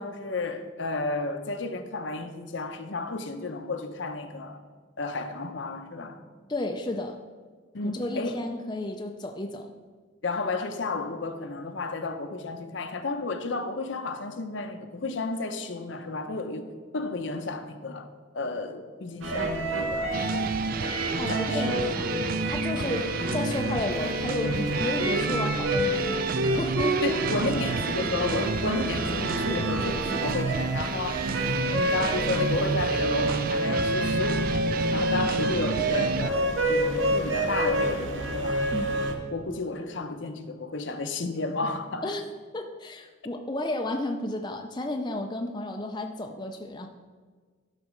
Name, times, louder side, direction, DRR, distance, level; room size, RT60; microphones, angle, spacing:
voice 1, 0.0-4.6 5.0-6.2 7.7-8.4 10.2-16.7 16.9-18.1 18.3-20.1 21.3-21.8 22.8-23.0 27.0-31.2 31.7-38.7 39.3-42.1, left 3 dB, 70° left, 0.8 m, -32 dB
voice 2, 6.5-7.2 7.8-9.7 21.2-22.1 22.4-27.2 38.7-39.0 42.0-42.2 42.5-46.9, left 1 dB, 20° left, 0.5 m, -32 dB
sound 1, 19.2-39.1, right 1 dB, 75° right, 1.2 m, -29 dB
sound 2, 20.1-36.3, right 4 dB, 45° right, 0.4 m, -30 dB
12.0 x 4.2 x 6.3 m
head